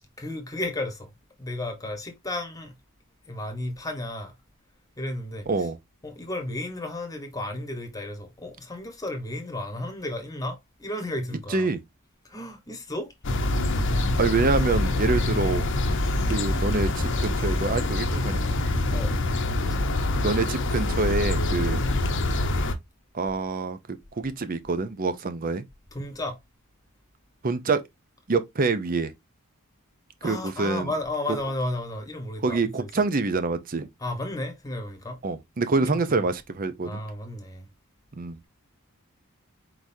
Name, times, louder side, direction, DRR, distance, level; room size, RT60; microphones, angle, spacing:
voice 1, 0.2-1.1 1.4-2.7 3.3-4.3 5.0-5.7 6.0-11.7 12.2-13.1 18.9-19.2 19.6-19.9 25.9-26.4 30.2-32.9 34.0-35.2 35.8-36.2 36.8-37.7, left 1 dB, 15° left, 1.2 m, -33 dB
voice 2, 5.5-5.8 11.5-11.8 14.2-15.6 16.2-18.4 20.2-21.8 23.1-25.6 27.4-27.8 28.3-29.1 30.2-30.9 31.3-31.4 32.4-33.9 35.2-37.0 38.2-38.5, right 3 dB, 40° right, 0.6 m, -26 dB
sound 1, 13.2-22.7, left 2 dB, 60° left, 0.8 m, -25 dB
4.7 x 3.9 x 2.7 m
head